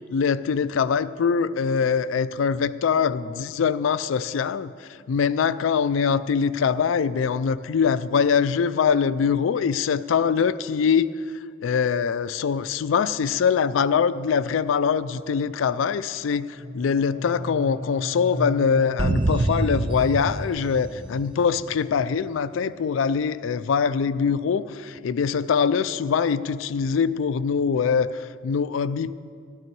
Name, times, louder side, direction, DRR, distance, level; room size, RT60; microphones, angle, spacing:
voice 1, 0.1-11.1 11.6-29.1, left 6 dB, 80° left, 15 dB, 0.4 m, -23 dB
sound 1, 16.1-20.1, left 1 dB, 25° left, 4.0 m, -36 dB
sound 2, 19.0-21.7, right 2 dB, 25° right, 0.4 m, -26 dB
12.5 x 12.5 x 4.6 m, 2.2 s
head